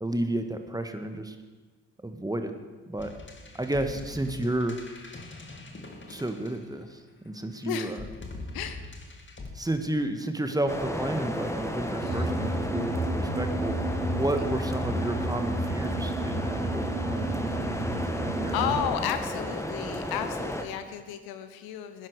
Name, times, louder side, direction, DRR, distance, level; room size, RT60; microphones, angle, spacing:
voice 1, 0.0-1.4 2.0-2.5 2.9-3.1 3.5-4.8 6.1-8.0 9.5-13.8 14.1-18.8, right 1 dB, 10° right, 6 dB, 1.6 m, -32 dB
sound 1, 3.0-7.0 7.9-9.5, left 2 dB, 30° left, 2.3 m, -43 dB
voice 2, 7.6-7.9 8.5-8.8 12.0-12.2 18.5-22.1, left 9 dB, 70° left, 10 dB, 1.0 m, -33 dB
sound 2, 10.7-20.6, equal, 5° left, 1.7 m, -34 dB
sound 3, 12.0-18.9, right 1 dB, 60° right, 3.9 m, -31 dB
18.0 x 10.5 x 4.9 m, 1.4 s
hypercardioid pair, 45°, 38 cm